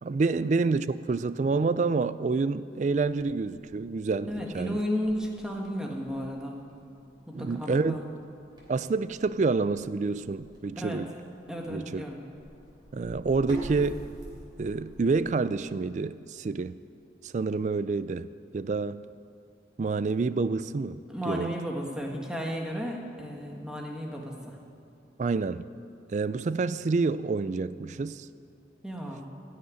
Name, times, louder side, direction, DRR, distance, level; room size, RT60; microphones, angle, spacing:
voice 1, 0.0-4.8 7.3-8.0 8.7-11.1 11.7-12.0 12.9-14.0 14.6-16.7 17.2-19.0 19.8-21.6 25.2-25.6 26.1-28.3, right 4 dB, 40° right, 0.3 m, -28 dB
sound 1, 2.8-15.3, right 1 dB, 25° right, 3.0 m, -48 dB
voice 2, 4.3-6.6 7.3-8.1 10.8-11.0 11.5-12.2 21.1-24.5 28.8-29.3, equal, 5° right, 1.5 m, -33 dB
16.0 x 6.6 x 9.5 m
head